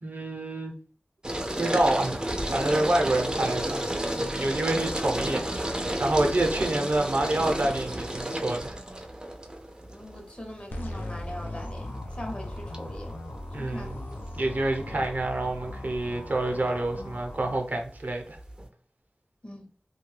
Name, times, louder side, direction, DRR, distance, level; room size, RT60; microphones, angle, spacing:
voice 1, 0.0-0.8 1.6-3.8 4.2-8.8 13.5-14.0 14.3-18.4, right 1 dB, 70° right, 0.6 m, -27 dB
sound 1, 1.2-18.7, right 1 dB, 25° right, 0.5 m, -33 dB
voice 2, 9.9-13.1 13.6-13.9 19.4-19.7, left 1 dB, 40° left, 0.8 m, -41 dB
sound 2, 10.7-17.6, left 1 dB, 75° left, 0.4 m, -38 dB
2.7 x 2.2 x 3.2 m
wide cardioid pair, 60°, 3 cm